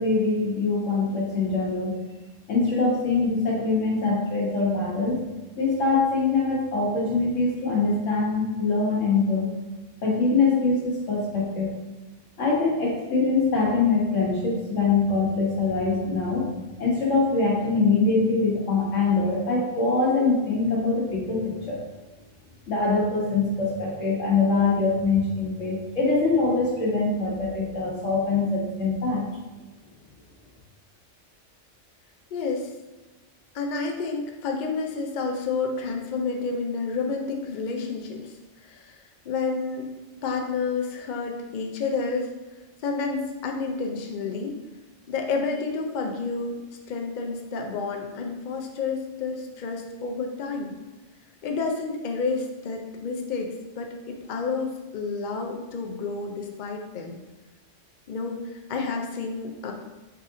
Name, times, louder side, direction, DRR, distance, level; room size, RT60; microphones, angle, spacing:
voice 1, 0.0-2.0 2.5-5.2 5.6-9.5 10.0-11.7 12.4-16.5 16.8-21.8 22.7-29.2, left 3 dB, 80° left, -4 dB, 1.5 m, -23 dB
voice 2, 32.3-32.7 33.5-38.3 38.6-39.9 40.2-42.3 42.8-44.6 45.1-46.6 46.9-50.7 51.4-53.5 53.8-57.2 58.1-59.7, left 4 dB, 55° left, 2 dB, 0.5 m, -30 dB
4.1 x 3.6 x 2.6 m, 1.1 s
omnidirectional pair, 1.3 m